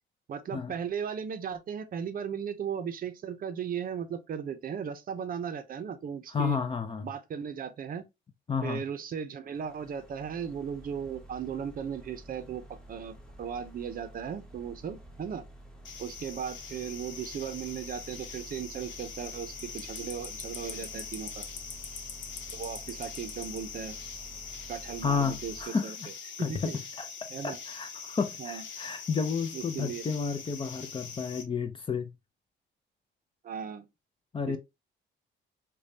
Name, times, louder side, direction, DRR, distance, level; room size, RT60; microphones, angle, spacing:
voice 1, 0.3-6.6 7.0-8.0 8.6-15.4 16.0-21.5 22.5-23.9 24.7-26.0 26.4-26.8 27.3-27.6 28.4-28.6 29.5-30.1 33.4-33.9 34.5-34.6, right 7 dB, 45° right, 0.6 m, -37 dB
voice 2, 6.3-7.1 8.5-8.8 25.0-26.1 26.4-32.1 34.3-34.6, left 5 dB, 25° left, 0.5 m, -31 dB
sound 1, 9.5-25.6, right 1 dB, 5° left, 1.0 m, -50 dB
sound 2, 15.8-31.4, left 6 dB, 70° left, 0.9 m, -43 dB
5.0 x 2.2 x 2.7 m
cardioid pair, 120°, 20 cm